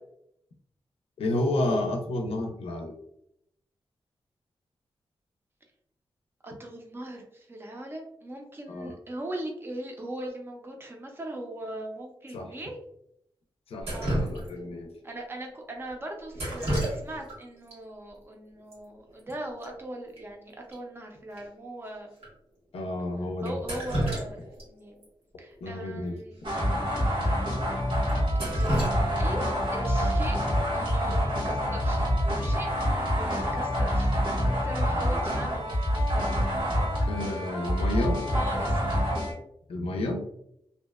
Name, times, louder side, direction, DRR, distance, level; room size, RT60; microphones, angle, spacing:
voice 1, 1.2-2.9 8.7-8.9 12.3-12.5 13.7-14.9 22.7-23.5 25.6-26.2 37.1-38.2 39.7-40.2, left 1 dB, 85° left, 2 dB, 0.4 m, -30 dB
voice 2, 6.4-12.8 13.9-14.3 15.0-22.1 23.4-25.0 25.4-26.4 28.6-28.9 29.2-30.4 30.7-32.7 33.2-34.1 34.5-36.5 38.3-38.8, right 1 dB, 25° right, 2 dB, 0.4 m, -39 dB
Drip, 13.8-14.8 16.3-17.4 17.7-17.8 18.7-18.8 19.1-19.3 19.6-19.7 20.2-20.3 20.7-20.8 21.4-21.5 22.2-22.3 23.4-24.7 25.0-25.1 26.4-26.5 27.0-27.1 27.5-27.6 28.1-29.7 31.7-32.0 32.4-32.8, right 1 dB, 90° right, 1.1 m, -31 dB
sound 1, 26.4-39.3, equal, 70° right, 1.4 m, -26 dB
2.7 x 2.1 x 2.2 m, 0.76 s
wide cardioid pair, 165°, 10 cm